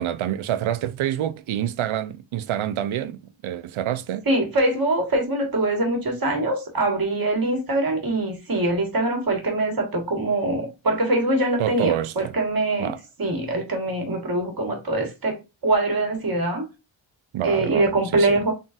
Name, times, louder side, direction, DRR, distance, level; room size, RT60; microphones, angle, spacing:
voice 1, 0.0-4.3 11.6-12.3 12.8-13.0 17.3-18.4, right 11 dB, 85° right, 0.5 m, -27 dB
voice 2, 4.3-12.9 13.2-15.4 15.6-16.6 17.4-18.5, right 2 dB, 45° right, 1.5 m, -23 dB
3.8 x 3.7 x 2.4 m
wide cardioid pair, 125°, 47 cm